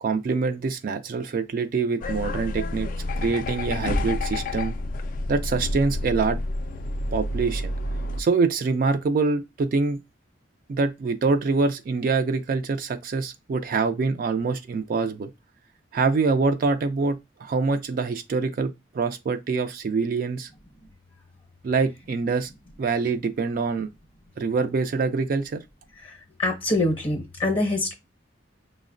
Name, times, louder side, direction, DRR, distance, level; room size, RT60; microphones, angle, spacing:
voice 1, 0.0-2.9 3.2-4.8 5.3-6.4 7.1-7.7 8.2-10.0 10.7-15.3 15.9-20.5 21.6-22.5 22.8-23.9 24.4-25.6, right 4 dB, 50° right, 0.3 m, -25 dB
sound 1, 2.0-8.2, left 1 dB, 45° left, 0.3 m, -29 dB
voice 2, 26.0-27.9, left 2 dB, 30° left, 0.7 m, -25 dB
6.0 x 2.1 x 2.5 m
head